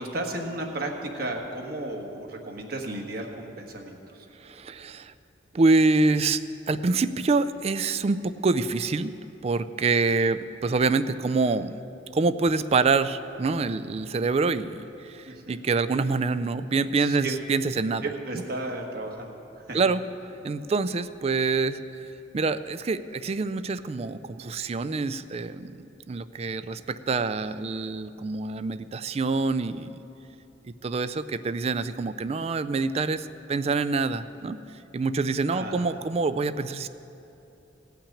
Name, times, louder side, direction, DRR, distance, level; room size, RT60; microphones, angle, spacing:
voice 1, 0.0-4.3 15.2-15.7 17.0-17.4 18.0-19.4 19.6-19.8 35.5-36.0, right 2 dB, 55° right, 1 dB, 1.4 m, -34 dB
voice 2, 4.4-5.1 5.5-6.4 6.7-9.2 9.4-11.7 12.1-18.0 19.7-20.0 20.4-21.8 22.3-30.0 30.8-34.6 34.9-36.9, right 3 dB, 35° right, 13 dB, 0.4 m, -26 dB
17.0 x 5.9 x 8.6 m, 2.9 s
head